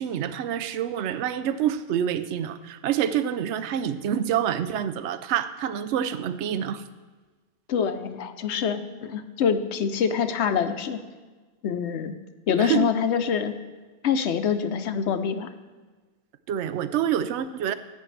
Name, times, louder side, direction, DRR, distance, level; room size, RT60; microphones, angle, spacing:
voice 1, 0.0-6.8 12.6-12.9 16.5-17.7, right 9 dB, 75° right, 13 dB, 0.9 m, -27 dB
voice 2, 7.7-11.0 11.6-12.2 12.5-13.6 14.0-15.5, left 7 dB, 70° left, 10 dB, 1.0 m, -25 dB
16.0 x 9.2 x 3.3 m, 1.3 s
omnidirectional pair, 1.2 m